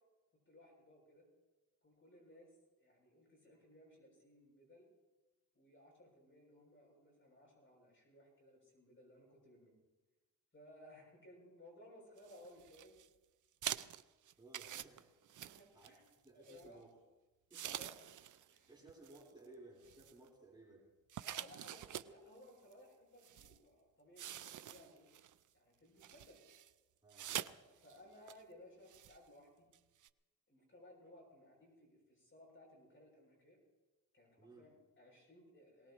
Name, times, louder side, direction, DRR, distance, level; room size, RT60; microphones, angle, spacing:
voice 1, 0.3-1.3 1.8-4.9 5.5-9.7 10.5-13.0 15.4-16.0 16.3-16.8 17.7-18.0 18.5-18.7 21.2-25.1 25.5-26.4 27.4-29.7 30.5-33.6 34.1-35.9, left 1 dB, 35° left, -2 dB, 7.1 m, -61 dB
sound 1, 12.2-13.1 13.6-16.1 16.5-16.7 17.5-18.6 18.9-19.2 19.8-20.3 21.1-22.1 22.7-22.8 23.2-23.6 24.2-25.3 26.0-26.7 27.1-27.5 27.8-28.0 28.3-28.4 28.9-29.2 29.7-29.8 30.0-30.1, right 11 dB, 65° right, 0.5 m, -46 dB
voice 2, 14.4-15.4 15.7-16.0 16.2-17.0 17.5-17.8 18.7-20.9 27.0-27.3 34.4-34.7, right 2 dB, 15° right, -5 dB, 4.0 m, -59 dB
22.5 x 18.5 x 3.0 m, 1.2 s
wide cardioid pair, 105°, 34 cm